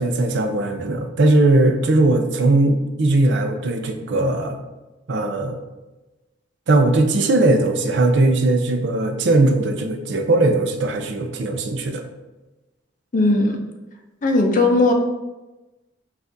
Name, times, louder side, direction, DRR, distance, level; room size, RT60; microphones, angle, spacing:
voice 1, 0.0-4.6 5.1-5.6 6.7-12.0, right 2 dB, 70° right, 6 dB, 0.5 m, -19 dB
voice 2, 13.1-13.6 14.2-14.9, left 2 dB, 45° left, 3 dB, 0.5 m, -17 dB
5.7 x 2.4 x 2.6 m, 1.1 s
head